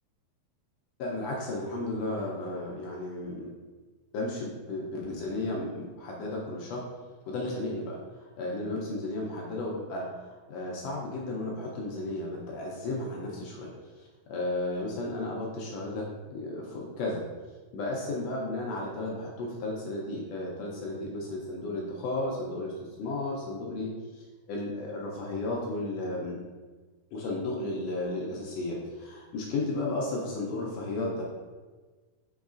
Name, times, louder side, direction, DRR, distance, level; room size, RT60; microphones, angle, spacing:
voice 1, 1.0-3.5 4.1-6.8 7.3-13.7 14.0-17.2 17.7-26.4 27.1-31.2, left 2 dB, 80° left, -2 dB, 1.5 m, -34 dB
6.3 x 3.0 x 2.4 m, 1.3 s
omnidirectional pair, 3.5 m